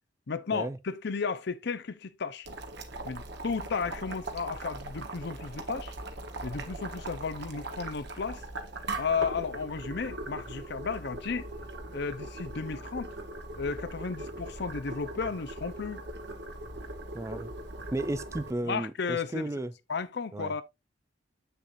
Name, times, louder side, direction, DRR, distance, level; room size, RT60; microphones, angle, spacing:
voice 1, 0.3-2.5 3.0-5.9 6.4-8.4 9.0-11.5 11.9-13.1 13.6-16.0 18.6-19.5 19.9-20.6, left 5 dB, 60° left, 0.6 m, -33 dB
Boiling, 2.4-18.5, right 2 dB, 60° right, 1.2 m, -40 dB
voice 2, 17.1-17.5 17.9-19.7 20.3-20.5, right 1 dB, 15° right, 0.4 m, -34 dB
7.6 x 6.8 x 2.6 m
head